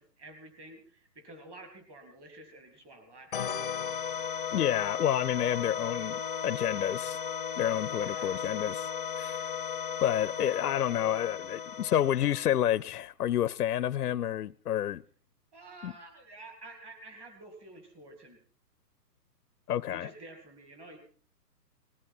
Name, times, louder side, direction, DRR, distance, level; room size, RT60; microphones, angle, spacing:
voice 1, 0.0-3.3 7.9-8.5 15.5-18.4 19.9-21.0, right 2 dB, 10° right, 2.2 m, -50 dB
sound 1, 3.3-12.8, left 7 dB, 35° left, 0.7 m, -36 dB
voice 2, 4.5-7.2 7.6-8.9 9.2-9.5 10.0-15.0 15.8-15.9 19.7-20.1, left 11 dB, 65° left, 0.6 m, -29 dB
19.5 x 13.5 x 4.3 m
hypercardioid pair, 165°, 49 cm